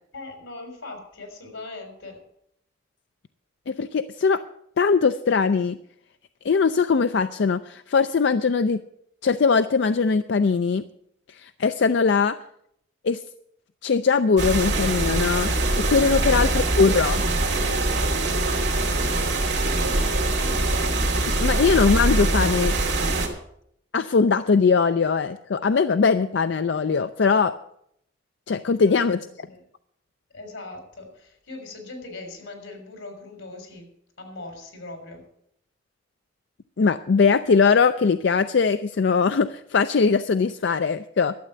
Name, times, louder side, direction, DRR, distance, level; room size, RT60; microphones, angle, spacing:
voice 1, 0.1-2.2 16.0-16.8 18.9-20.4 28.8-29.6 30.3-33.9 34.2-35.2, left 2 dB, 90° left, 5 dB, 3.8 m, -41 dB
voice 2, 3.7-4.4 4.8-5.8 6.4-8.8 9.2-10.8 11.3-12.4 13.0-13.2 13.8-15.5 15.9-17.2 21.4-22.7 23.9-27.5 28.5-29.5 36.8-41.3, left 5 dB, 60° left, 11 dB, 0.4 m, -21 dB
sound 1, 14.4-23.3, right 2 dB, 65° right, 2.7 m, -23 dB
12.0 x 7.6 x 8.1 m, 0.72 s
head